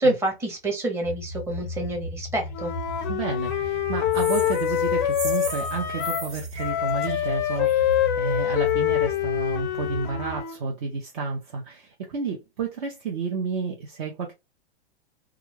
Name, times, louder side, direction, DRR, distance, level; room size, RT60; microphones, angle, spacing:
voice 1, 0.0-2.7, right 1 dB, 10° right, 0.8 m, -27 dB
sound 1, 1.0-10.4, equal, 85° right, 1.0 m, -37 dB
Wind instrument woodwind instrument, 2.5-6.3 6.6-10.6, left 12 dB, 25° left, 0.3 m, -25 dB
voice 2, 3.1-14.3, right 4 dB, 50° right, 0.7 m, -31 dB
sound 2, 4.1-7.9, right 3 dB, 70° right, 1.5 m, -38 dB
2.3 x 2.3 x 3.1 m
hypercardioid pair, 135°, 33 cm